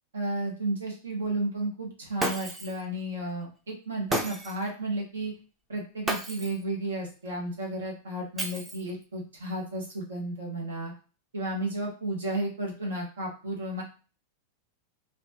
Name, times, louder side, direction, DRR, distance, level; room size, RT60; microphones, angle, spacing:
voice 1, 0.1-5.3 5.7-10.9 11.3-13.8, right 1 dB, 70° right, 0 dB, 1.0 m, -33 dB
Shatter, 2.2-2.8 4.1-4.7 6.1-6.6 8.4-9.0, right 1 dB, 15° right, 0.6 m, -32 dB
3.2 x 2.3 x 2.7 m, 0.37 s
figure-of-eight pair, 90°, 0 cm